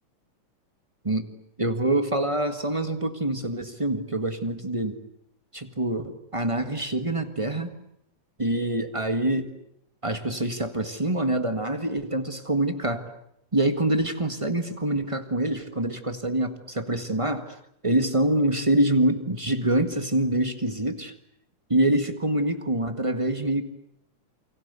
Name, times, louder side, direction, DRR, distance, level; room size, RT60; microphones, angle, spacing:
voice 1, 1.6-5.0 5.5-7.7 8.4-9.5 10.0-13.1 13.5-17.5 17.8-21.1 21.7-23.6, right 1 dB, 15° right, 8 dB, 1.0 m, -25 dB
29.0 x 24.5 x 8.3 m, 0.76 s
omnidirectional pair, 3.5 m